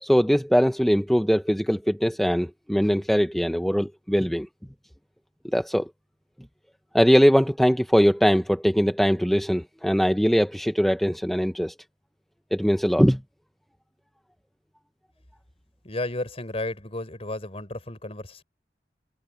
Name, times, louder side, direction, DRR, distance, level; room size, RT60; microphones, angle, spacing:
voice 1, 0.0-4.5 5.4-5.9 6.9-11.7 12.5-13.2, equal, ahead, 0.7 m, -21 dB
voice 2, 15.8-18.4, left 2 dB, 35° left, 4.2 m, -33 dB
head